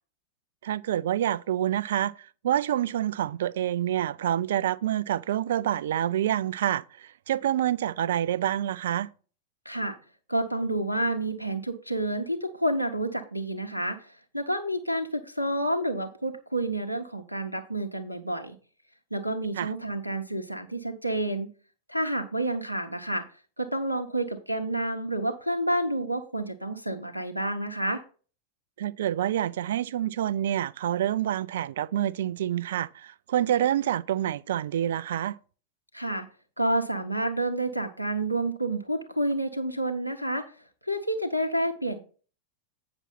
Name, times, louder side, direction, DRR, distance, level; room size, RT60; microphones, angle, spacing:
voice 1, 0.6-9.1 19.6-19.7 28.8-35.4, right 11 dB, 60° right, 0.4 m, -27 dB
voice 2, 9.6-10.0 10.3-18.6 19.1-21.5 21.9-23.3 23.6-28.0 35.9-36.3 36.6-40.5 40.8-42.0, right 1 dB, 90° right, 0.8 m, -29 dB
8.9 x 6.0 x 4.1 m
figure-of-eight pair, 90°, 0 cm